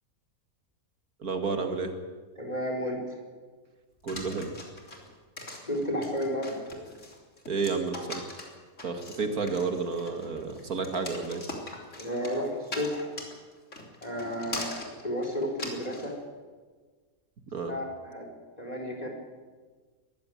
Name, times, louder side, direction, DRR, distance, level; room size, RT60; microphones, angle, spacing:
voice 1, 1.2-1.9 4.0-4.5 7.5-8.2 8.8-11.4 17.5-17.7, right 4 dB, 80° right, 5 dB, 2.5 m, -31 dB
voice 2, 2.4-3.0 5.6-6.6 12.0-13.2 14.0-14.8 15.0-16.1 17.7-18.3 18.6-19.1, equal, 25° left, 2 dB, 4.7 m, -32 dB
sound 1, 4.1-16.1, left 2 dB, 55° left, 3.8 m, -41 dB
22.0 x 15.5 x 9.3 m, 1.4 s
omnidirectional pair, 1.5 m